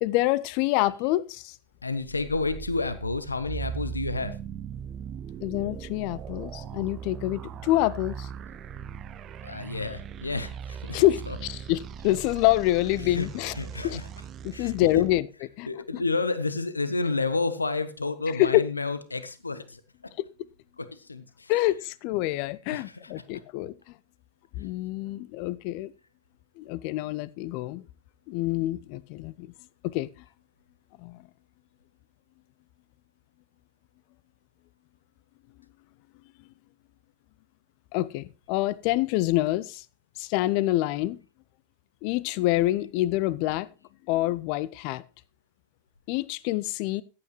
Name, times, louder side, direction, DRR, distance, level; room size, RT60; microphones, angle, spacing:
voice 1, 0.0-1.6 5.4-8.3 10.9-13.5 13.8-14.0 14.4-15.3 15.6-16.0 18.4-18.6 20.2-20.3 21.5-23.7 24.5-25.9 26.6-27.8 28.3-29.5 29.8-30.1 31.0-31.3 37.9-39.8 40.2-41.2 42.0-43.7 44.1-45.0 46.1-47.0, left 16 dB, 45° left, 0.5 m, -26 dB
voice 2, 1.8-4.4 9.4-11.4 13.0-14.3 14.5-15.1 15.7-19.8 20.8-21.8 22.7-23.1, left 3 dB, 80° left, 0.7 m, -31 dB
sound 1, 2.0-15.2, right 7 dB, 30° right, 0.5 m, -39 dB
14.0 x 8.6 x 3.0 m
figure-of-eight pair, 90°, 0 cm